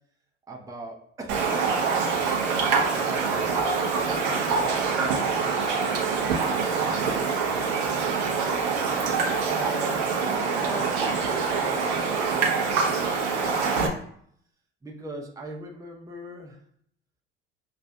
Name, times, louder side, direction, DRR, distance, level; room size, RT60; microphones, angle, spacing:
voice 1, 0.5-2.3 2.9-7.5 9.3-13.9 14.8-16.6, right 2 dB, 10° right, 0 dB, 0.7 m, -40 dB
Raindrop, 1.3-13.9, right 5 dB, 65° right, 0.8 m, -25 dB
6.7 x 2.5 x 2.3 m, 0.65 s
figure-of-eight pair, 65°, 35 cm